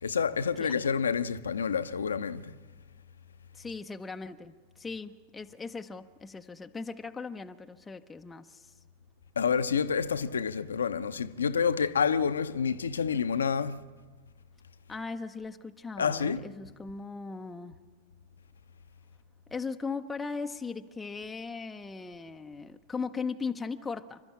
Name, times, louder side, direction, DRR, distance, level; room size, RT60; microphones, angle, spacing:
voice 1, 0.0-2.6 9.4-13.8 16.0-16.5, left 6 dB, 70° left, 0.8 m, -28 dB
voice 2, 3.5-8.7 14.9-17.8 19.5-24.2, left 4 dB, 10° left, 0.7 m, -38 dB
28.0 x 12.5 x 8.7 m
figure-of-eight pair, 90°, 0 cm